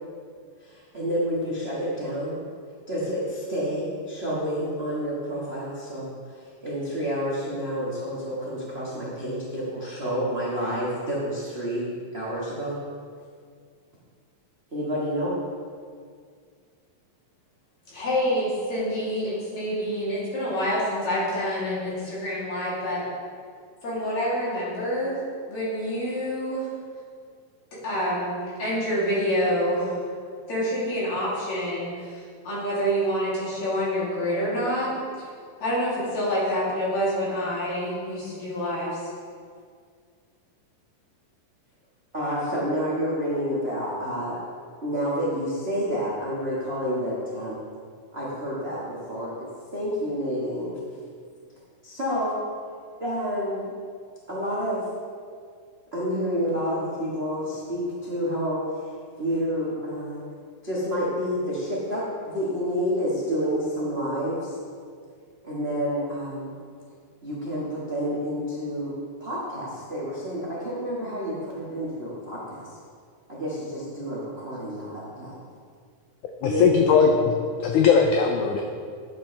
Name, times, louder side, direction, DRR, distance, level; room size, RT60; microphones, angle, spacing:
voice 1, 0.6-2.4 2.9-12.8 14.7-15.4 42.1-44.4 44.8-47.6 48.1-49.3 49.7-50.8 51.8-52.4 53.0-53.7 54.3-54.8 55.9-58.8 59.2-60.2 60.6-64.6 65.4-66.5 67.2-68.9 69.2-72.8 73.3-75.4 76.4-77.0, equal, 70° right, -7 dB, 0.5 m, -29 dB
voice 2, 17.9-23.0 23.8-25.2 25.5-26.7 27.8-29.9 30.5-35.3 35.6-39.0, equal, 55° left, -9 dB, 4.1 m, -27 dB
voice 3, 76.4-77.1 77.6-78.6, left 6 dB, 80° left, 3 dB, 1.9 m, -19 dB
11.5 x 7.5 x 3.3 m, 2.1 s
omnidirectional pair, 4.0 m